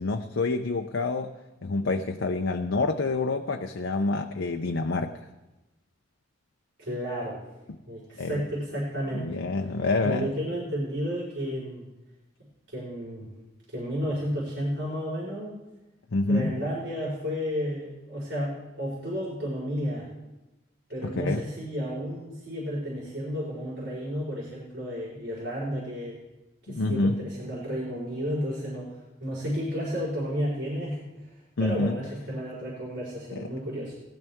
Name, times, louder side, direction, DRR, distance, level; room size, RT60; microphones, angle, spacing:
voice 1, 0.0-1.3 1.6-5.2 8.2-8.4 9.1-10.3 16.1-16.6 21.0-21.4 26.7-27.2 31.6-32.0 33.3-33.5, left 3 dB, 85° left, 4 dB, 0.7 m, -27 dB
voice 2, 6.8-7.4 7.9-9.3 10.0-11.9 12.7-13.3 13.7-15.6 16.3-20.1 20.9-26.2 26.7-31.3 31.6-34.0, equal, 65° right, -7 dB, 4.8 m, -32 dB
18.5 x 12.5 x 3.6 m, 1.0 s
head